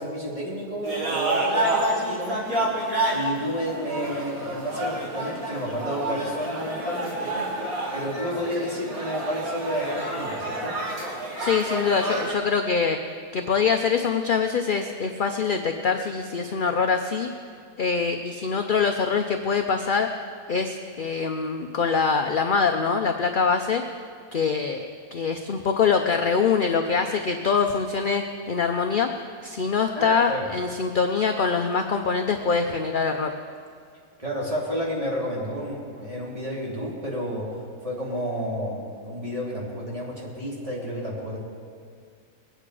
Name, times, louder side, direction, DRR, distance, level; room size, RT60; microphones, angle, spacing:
voice 1, 0.0-2.7 3.1-7.7 7.9-10.8 11.1-11.2 29.9-30.5 34.2-41.4, equal, 20° right, -6 dB, 3.0 m, -31 dB
sound 1, 0.8-12.3, right 1 dB, 65° right, 2.5 m, -29 dB
voice 2, 11.4-17.3 17.8-20.1 20.5-23.8 24.3-33.3, left 5 dB, 55° left, 5 dB, 0.6 m, -24 dB
21.5 x 8.9 x 4.9 m, 2.1 s
omnidirectional pair, 1.6 m